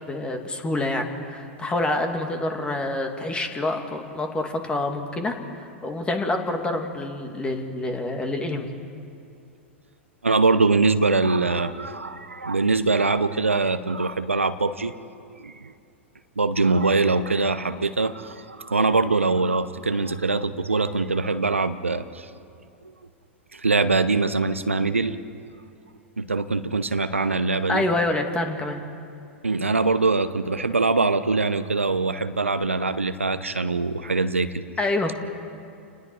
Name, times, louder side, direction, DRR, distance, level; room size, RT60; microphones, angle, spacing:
voice 1, 0.1-8.7 27.7-28.8 34.8-35.1, left 2 dB, 15° left, 4 dB, 2.4 m, -27 dB
voice 2, 10.2-14.9 15.4-15.7 16.4-22.3 23.5-25.2 26.2-27.8 29.4-34.6, right 3 dB, 90° right, 11 dB, 0.8 m, -23 dB
29.5 x 20.0 x 4.8 m, 2.5 s
figure-of-eight pair, 100°, 7 cm